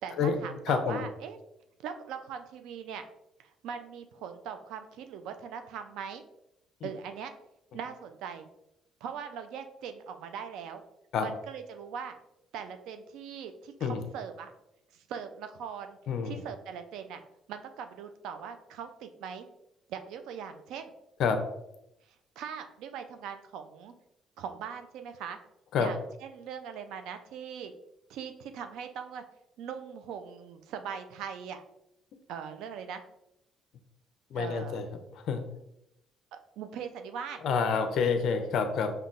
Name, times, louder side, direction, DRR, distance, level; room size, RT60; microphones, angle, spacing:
voice 1, 0.0-1.4 1.8-3.0 3.6-6.2 6.8-7.3 7.7-8.5 9.0-10.8 11.2-12.2 12.5-14.5 14.9-16.0 16.2-17.2 17.5-19.5 19.9-20.9 22.4-23.9 24.4-25.4 25.8-27.7 28.1-29.2 29.6-31.6 32.3-33.0 34.4-34.8 36.3-37.4, right 7 dB, 85° right, 8 dB, 0.4 m, -40 dB
voice 2, 0.7-1.1 11.1-11.3 13.8-14.0 16.1-16.4 21.2-21.4 25.7-25.9 34.3-34.9 35.1-35.4 37.4-38.9, left 5 dB, 65° left, 7 dB, 0.5 m, -28 dB
5.5 x 2.2 x 2.5 m, 0.83 s
cardioid pair, 115°, 0 cm